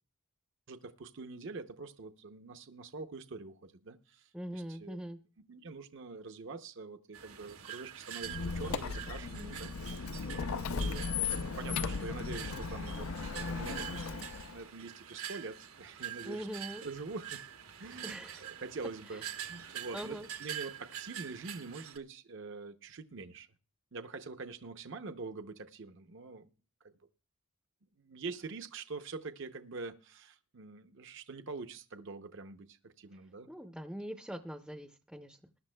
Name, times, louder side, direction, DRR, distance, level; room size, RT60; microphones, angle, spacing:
voice 1, 0.7-5.0 5.5-16.5 16.8-17.4 17.8-23.5 23.9-26.5 28.0-33.5, right 3 dB, 55° right, 7 dB, 0.7 m, -45 dB
voice 2, 4.3-5.2 16.2-16.8 18.0-18.4 19.1-19.2 19.9-20.3 33.5-35.6, equal, 5° right, 5 dB, 0.5 m, -42 dB
sound 1, 7.1-22.0, right 10 dB, 80° right, 1.1 m, -45 dB
Squeak, 8.2-14.6, left 5 dB, 75° left, 0.5 m, -37 dB
21.0 x 11.0 x 2.2 m, 0.34 s
head